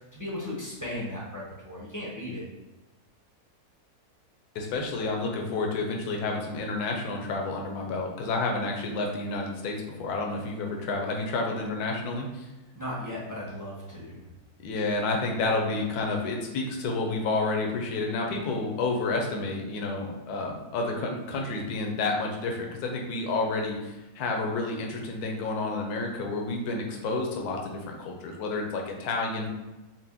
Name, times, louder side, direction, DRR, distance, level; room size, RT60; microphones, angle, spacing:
voice 1, 0.1-2.4 12.7-14.2, left 1 dB, 20° left, -6 dB, 0.5 m, -36 dB
voice 2, 4.5-12.5 14.6-29.5, left 3 dB, 80° left, 1 dB, 1.2 m, -30 dB
4.1 x 2.1 x 3.5 m, 1.1 s
omnidirectional pair, 1.6 m